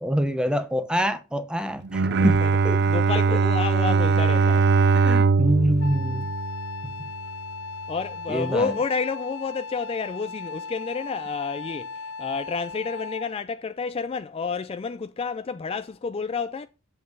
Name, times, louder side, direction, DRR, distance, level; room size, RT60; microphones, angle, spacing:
voice 1, 0.0-2.8 5.0-6.3 7.0-7.1 8.3-8.7, equal, 5° right, 0.8 m, -26 dB
Bowed string instrument, 1.8-7.2, right 4 dB, 55° right, 0.5 m, -21 dB
voice 2, 2.1-2.5 2.9-4.7 7.9-16.7, left 5 dB, 30° left, 0.3 m, -30 dB
Wind instrument woodwind instrument, 5.8-13.4, left 4 dB, 75° left, 0.7 m, -37 dB
7.9 x 5.4 x 5.3 m
head